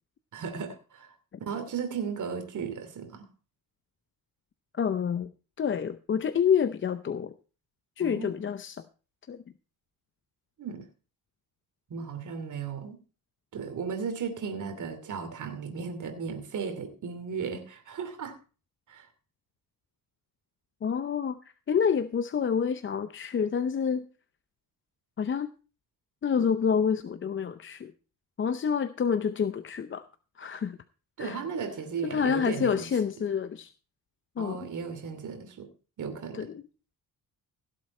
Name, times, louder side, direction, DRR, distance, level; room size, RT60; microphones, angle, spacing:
voice 1, 0.3-1.1 1.4-3.3 8.0-8.4 10.6-10.8 11.9-13.0 13.5-18.3 18.9-19.1 31.2-32.9 34.4-35.7 36.0-36.5, right 6 dB, 55° right, 6 dB, 2.9 m, -35 dB
voice 2, 4.8-5.3 5.6-7.3 8.0-8.8 9.3-9.4 20.8-21.4 21.7-24.1 25.2-25.5 26.2-27.9 28.4-30.0 30.4-30.8 31.2-31.4 32.0-33.7 34.4-34.7 36.3-36.6, left 7 dB, 35° left, 11 dB, 0.6 m, -28 dB
16.5 x 7.6 x 4.2 m, 0.36 s
cardioid pair, 120°, 36 cm